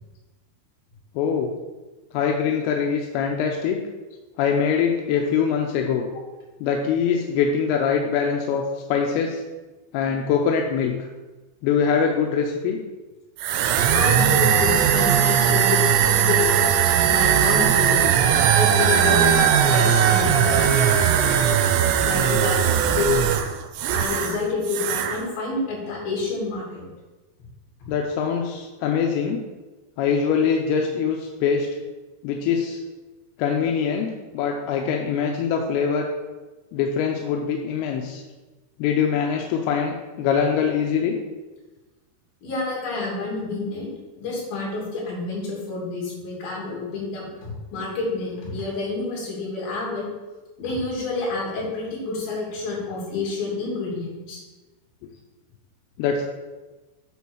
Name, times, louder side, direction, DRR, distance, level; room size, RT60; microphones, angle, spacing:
voice 1, 1.2-1.5 2.1-3.8 4.4-6.1 6.6-9.4 9.9-10.9 11.6-12.8 27.9-29.4 30.0-31.7 32.2-32.8 33.4-36.1 36.7-38.2 38.8-41.2 56.0-56.2, left 6 dB, 80° left, 1 dB, 2.4 m, -23 dB
sound 1, 13.4-24.4 24.6-25.2, right 8 dB, 85° right, 2.6 m, -19 dB
voice 2, 13.9-16.7 17.1-18.1 18.5-20.8 22.0-23.1 23.9-26.9 42.4-43.9 44.2-50.1 50.6-54.4, left 3 dB, 60° left, -5 dB, 4.5 m, -28 dB
8.5 x 4.2 x 6.3 m, 1.2 s
omnidirectional pair, 4.9 m